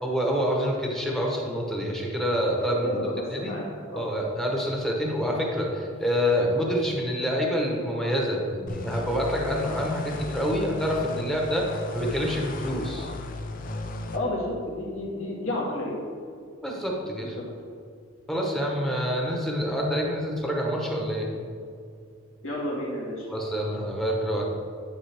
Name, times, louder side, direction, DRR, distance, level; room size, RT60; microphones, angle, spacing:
voice 1, 0.0-3.0 3.3-3.6 3.9-11.7 11.9-13.1 16.6-17.4 18.3-21.3 23.3-24.4, equal, ahead, -2 dB, 1.0 m, -27 dB
voice 2, 2.8-4.1 14.1-16.0 17.2-17.4 22.4-23.3, left 1 dB, 70° left, -4 dB, 1.9 m, -31 dB
sound 1, 8.7-14.2, left 2 dB, 40° left, 0.5 m, -35 dB
10.5 x 5.3 x 3.4 m, 2.4 s
head